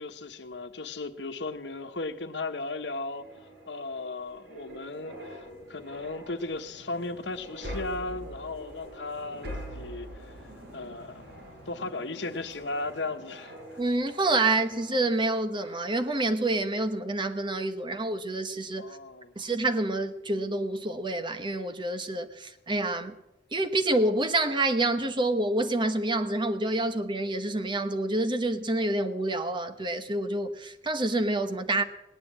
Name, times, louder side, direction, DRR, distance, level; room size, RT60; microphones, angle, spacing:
voice 1, 0.0-3.3 3.7-10.3 10.7-13.6 18.8-19.3, left 3 dB, 70° left, 1.2 m, -36 dB
sound 1, 2.9-15.3 15.6-15.9, equal, 65° right, 5.9 m, -44 dB
voice 2, 13.8-18.9 19.4-23.1 23.5-31.8, right 2 dB, 25° right, 1.0 m, -27 dB
18.5 x 10.5 x 7.4 m
head